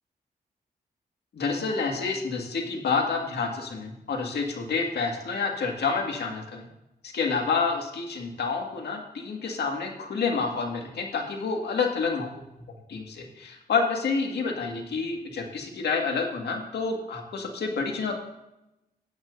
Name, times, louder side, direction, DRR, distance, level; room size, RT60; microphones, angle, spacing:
voice 1, 1.3-6.6 7.0-12.3 12.9-18.1, left 4 dB, 80° left, 2 dB, 2.0 m, -28 dB
15.5 x 9.1 x 2.7 m, 0.90 s
cardioid pair, 80°, 17 cm